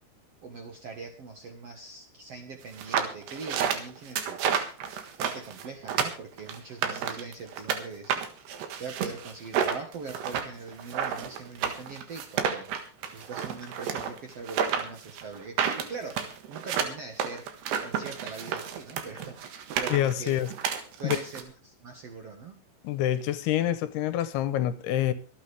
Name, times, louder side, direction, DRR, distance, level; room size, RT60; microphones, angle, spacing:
voice 1, 0.4-12.7 13.1-17.5 17.8-20.4 20.9-22.6, right 4 dB, 60° right, 3 dB, 1.7 m, -42 dB
sound 1, 2.7-7.8 8.1-21.4, right 7 dB, 80° right, 3.7 m, -30 dB
voice 2, 19.9-20.5 21.0-21.2 22.8-25.1, left 12 dB, 80° left, 13 dB, 2.8 m, -26 dB
25.0 x 9.2 x 3.4 m, 0.37 s
omnidirectional pair, 4.8 m